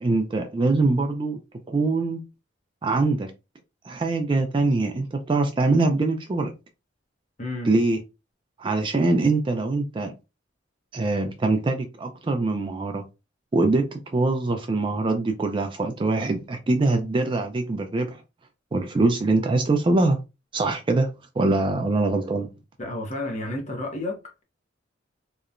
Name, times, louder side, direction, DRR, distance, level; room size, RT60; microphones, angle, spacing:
voice 1, 0.0-1.4 1.7-2.2 2.8-3.3 3.9-6.5 7.6-8.0 8.6-10.1 10.9-13.1 13.5-18.2 18.7-20.2 20.5-22.5, right 2 dB, 25° right, 0.3 m, -23 dB
voice 2, 7.4-7.7 22.8-24.4, left 2 dB, 40° left, 0.8 m, -31 dB
2.9 x 2.1 x 2.4 m
head